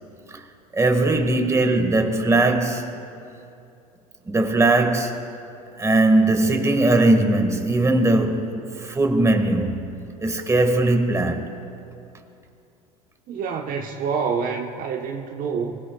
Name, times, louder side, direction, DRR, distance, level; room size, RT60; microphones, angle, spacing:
voice 1, 0.7-3.0 4.3-5.3 5.8-11.6, right 2 dB, 15° right, 1.9 m, -20 dB
voice 2, 13.3-15.8, right 6 dB, 45° right, 1.2 m, -27 dB
24.0 x 20.5 x 2.4 m
hypercardioid pair, 80°, 20 cm